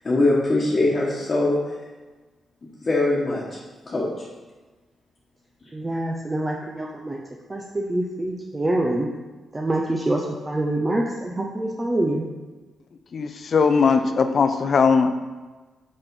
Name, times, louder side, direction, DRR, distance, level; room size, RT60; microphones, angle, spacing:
voice 1, 0.0-1.6 2.8-3.6 3.9-4.2, left 2 dB, 35° left, -5 dB, 1.4 m, -22 dB
voice 2, 5.7-7.2 7.5-9.1 9.5-12.3, right 1 dB, 20° right, -1 dB, 0.7 m, -25 dB
voice 3, 13.1-15.1, left 5 dB, 50° left, 8 dB, 0.6 m, -19 dB
5.5 x 5.3 x 5.4 m, 1.3 s
cardioid pair, 95°, 0 cm